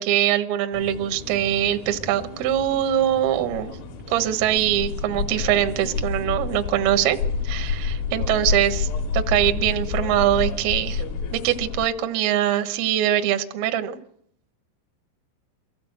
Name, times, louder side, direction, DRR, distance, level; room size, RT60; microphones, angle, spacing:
voice 1, 0.0-3.7 4.1-7.2 7.4-8.9 9.1-11.0 11.3-14.0, right 12 dB, 70° right, 8 dB, 2.4 m, -23 dB
sound 1, 0.7-11.9, left 5 dB, 60° left, 3.1 m, -29 dB
24.0 x 15.0 x 8.0 m, 0.70 s
omnidirectional pair, 5.6 m